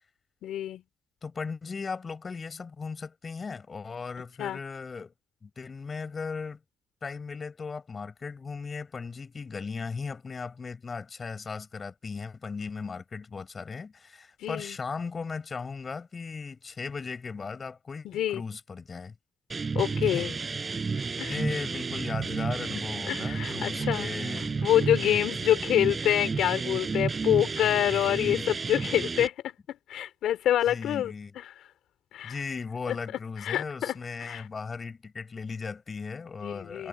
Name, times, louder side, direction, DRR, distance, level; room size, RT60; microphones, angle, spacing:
voice 1, 0.4-0.8 4.4-4.6 14.4-14.8 18.0-18.4 19.7-20.3 21.2-21.4 23.1-24.1 24.6-29.5 29.9-31.5 32.1-32.4 32.9-33.0 33.4-33.9 34.2-34.4 36.4-36.9, left 11 dB, 80° left, 4.0 m, -27 dB
voice 2, 1.2-5.1 5.4-6.6 7.0-19.1 20.1-20.4 21.3-24.6 25.0-25.3 27.8-28.5 30.7-31.3 32.2-36.9, left 5 dB, 40° left, 6.0 m, -37 dB
sound 1, 19.5-29.3, right 4 dB, 35° right, 7.0 m, -31 dB
cardioid pair, 80°, 0 cm